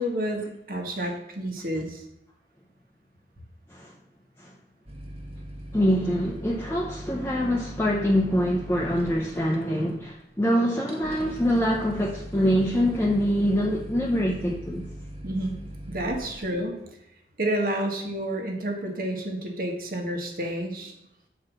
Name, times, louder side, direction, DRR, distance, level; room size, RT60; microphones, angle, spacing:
voice 1, 0.0-2.0 15.2-15.6 15.9-16.7 17.4-20.9, right 1 dB, 55° right, 2 dB, 1.5 m, -29 dB
sound 1, 4.9-16.5, equal, 35° right, 1.3 m, -41 dB
voice 2, 5.7-14.8, equal, 15° left, -2 dB, 0.7 m, -24 dB
8.9 x 4.8 x 6.1 m, 0.83 s
head